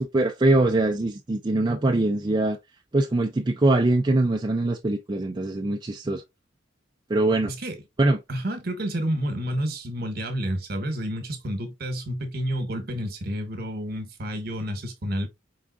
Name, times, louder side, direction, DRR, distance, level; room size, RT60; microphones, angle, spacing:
voice 1, 0.1-2.6 2.9-6.2 7.1-7.5 8.0-8.2, right 2 dB, 25° right, 0.4 m, -22 dB
voice 2, 7.5-7.8 8.3-15.3, equal, 50° right, 1.2 m, -30 dB
4.7 x 3.7 x 2.4 m
head